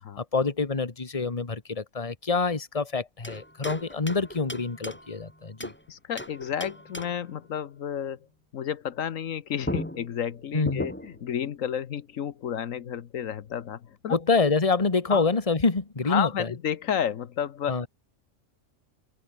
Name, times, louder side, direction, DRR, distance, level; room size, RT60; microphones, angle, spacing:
voice 1, 0.2-5.7 10.5-10.8 14.1-16.5 17.7-17.9, left 4 dB, 25° left, 1.6 m, -26 dB
sound 1, 3.2-5.8 6.2-7.3 9.3-9.4 9.6-11.3, equal, 10° left, 7.2 m, -37 dB
voice 2, 5.9-8.2 8.5-14.2 15.1-15.2 16.1-17.9, left 9 dB, 80° left, 1.4 m, -31 dB
omnidirectional pair, 1.4 m